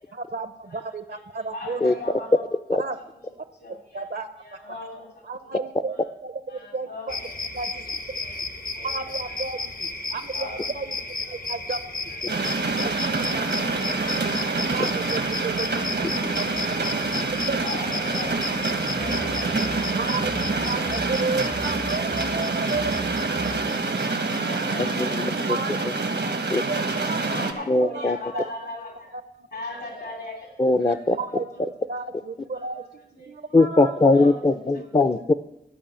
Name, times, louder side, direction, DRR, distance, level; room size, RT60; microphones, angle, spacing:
voice 1, 0.1-1.8 2.8-3.0 3.9-4.4 5.3-6.0 6.2-6.3 6.7-7.2 7.5-7.8 8.8-11.0 11.3-11.8 12.6-13.4 14.7-15.7 15.9-16.1 16.4-16.7 17.5-17.6 19.9-20.4 20.7-23.0 25.5-25.8 26.2-26.4 26.7-27.2 27.6-28.1 28.3-28.5 29.1-29.5 30.9-32.8 33.3-34.0, right 4 dB, 70° right, 10 dB, 0.7 m, -32 dB
voice 2, 0.6-1.2 1.5-2.4 3.6-4.0 4.4-5.5 5.9-6.0 6.5-7.4 8.1-9.7 10.3-11.1 11.4-11.5 12.1-13.1 17.6-20.0 20.6-21.4 21.8-22.3 24.4-25.5 26.7-29.1 29.5-31.6 32.5-32.9 33.2-33.3 34.1-34.3 34.7-34.9, left 2 dB, 75° left, 0 dB, 2.7 m, -41 dB
sound 1, 7.1-25.1, left 3 dB, 55° left, 0.9 m, -34 dB
sound 2, 12.3-27.5, right 3 dB, 90° right, 1.3 m, -26 dB
sound 3, 18.7-23.7, left 1 dB, 90° left, 4.9 m, -40 dB
voice 3, 24.8-25.6 26.5-26.6 27.7-28.2 30.6-31.2 33.5-35.3, left 2 dB, 30° left, 8 dB, 0.5 m, -20 dB
13.0 x 5.5 x 8.8 m, 0.83 s
wide cardioid pair, 70°, 18 cm